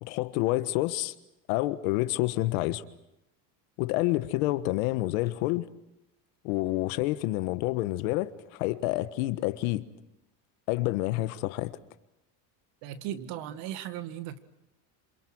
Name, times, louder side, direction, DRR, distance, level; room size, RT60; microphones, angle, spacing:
voice 1, 0.0-1.1 1.5-2.8 3.8-5.6 6.4-9.8 10.7-11.8, left 18 dB, 90° left, 1.4 m, -28 dB
voice 2, 12.8-14.4, right 11 dB, 65° right, 2.0 m, -37 dB
27.5 x 27.5 x 6.3 m
cardioid pair, 160°, 40 cm